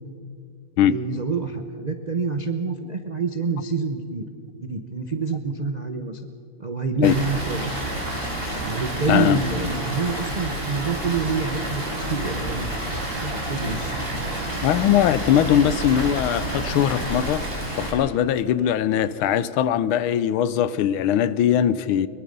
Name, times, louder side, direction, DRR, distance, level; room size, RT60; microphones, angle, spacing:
voice 1, 0.8-4.3 4.6-6.2 6.6-7.8 8.7-12.9 13.2-14.0, right 4 dB, 70° right, 0.4 m, -27 dB
Water, 7.0-17.9, right 1 dB, 25° right, 4.1 m, -29 dB
voice 2, 9.1-9.4 14.6-17.4 17.8-22.1, left 10 dB, 85° left, 1.5 m, -20 dB
22.0 x 22.0 x 5.4 m
omnidirectional pair, 2.2 m